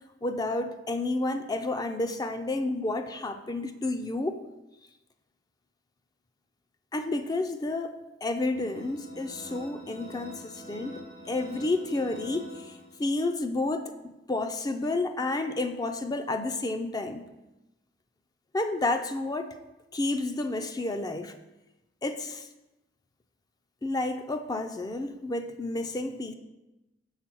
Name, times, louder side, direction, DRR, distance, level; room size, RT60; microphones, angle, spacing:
voice 1, 0.2-4.4 6.9-17.3 18.5-19.6 19.9-21.3 22.0-22.5 23.8-26.3, left 2 dB, 20° left, 7 dB, 0.4 m, -30 dB
sound 1, 8.5-13.3, left 1 dB, 85° left, 2.7 m, -45 dB
7.2 x 3.7 x 6.1 m, 1.0 s
head